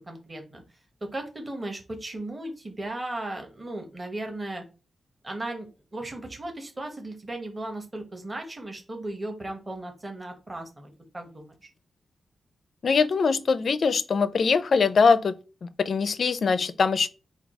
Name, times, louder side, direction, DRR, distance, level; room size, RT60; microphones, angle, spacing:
voice 1, 0.1-0.6 1.0-4.6 5.2-11.7, right 1 dB, 20° right, 0.9 m, -36 dB
voice 2, 12.8-15.4 15.6-17.1, left 5 dB, 50° left, 0.4 m, -22 dB
4.6 x 2.3 x 4.6 m
wide cardioid pair, 175°, 0 cm